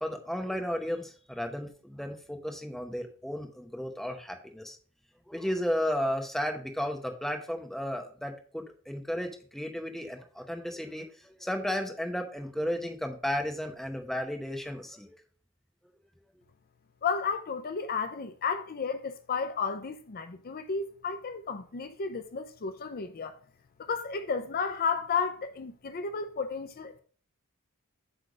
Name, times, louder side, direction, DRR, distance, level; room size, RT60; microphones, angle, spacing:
voice 1, 0.0-4.8 5.3-15.2, equal, ahead, 0.8 m, -34 dB
voice 2, 17.0-23.3 23.8-27.0, left 5 dB, 40° left, 0.5 m, -33 dB
7.8 x 3.4 x 4.9 m
head